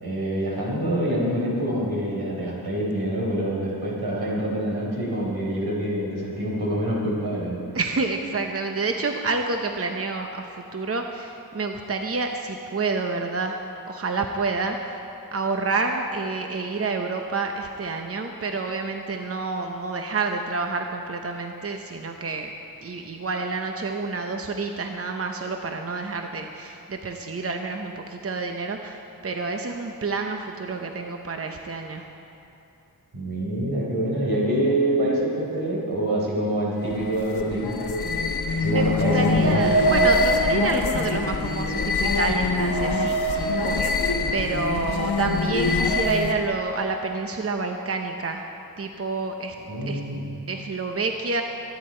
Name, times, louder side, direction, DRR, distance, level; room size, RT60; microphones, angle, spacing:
voice 1, 0.0-7.6 33.1-38.3 38.6-39.7 49.7-50.3, right 1 dB, 85° right, -4 dB, 4.2 m, -26 dB
voice 2, 7.7-13.6 13.9-15.0 15.3-22.5 22.8-32.0 38.7-48.5 48.8-49.5 49.9-50.0 50.5-51.4, right 3 dB, 40° right, 4 dB, 0.8 m, -28 dB
sound 1, 36.8-46.5, left 2 dB, 90° left, 1.2 m, -24 dB
23.5 x 9.5 x 4.4 m, 2.8 s
wide cardioid pair, 95°, 37 cm